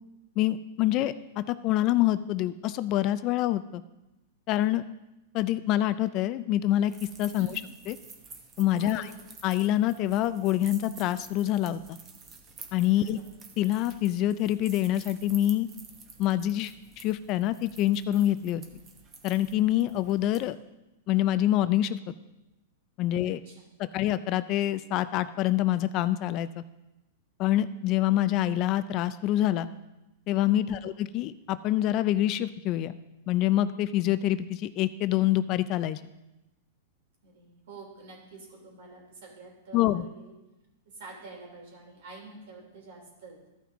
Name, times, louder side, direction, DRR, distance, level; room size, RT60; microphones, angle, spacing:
voice 1, 0.4-3.8 4.5-4.8 5.3-6.9 7.2-7.5 7.9-8.0 8.6-9.0 9.4-12.0 12.7-13.2 13.6-15.7 16.2-16.7 17.0-18.6 19.2-20.6 21.1-22.0 23.0-23.4 23.9-26.6 27.4-29.7 30.3-32.9 33.3-36.0 39.7-40.0, left 13 dB, 40° left, 14 dB, 0.4 m, -26 dB
sound 1, 6.8-20.4, right 5 dB, 25° right, 1.0 m, -50 dB
voice 2, 8.8-9.2 13.0-13.2 23.2-24.1 30.6-31.0 37.2-40.3 40.8-43.4, right 3 dB, 65° right, -1 dB, 3.3 m, -48 dB
13.5 x 5.8 x 3.6 m, 0.97 s
hypercardioid pair, 140°, 0 cm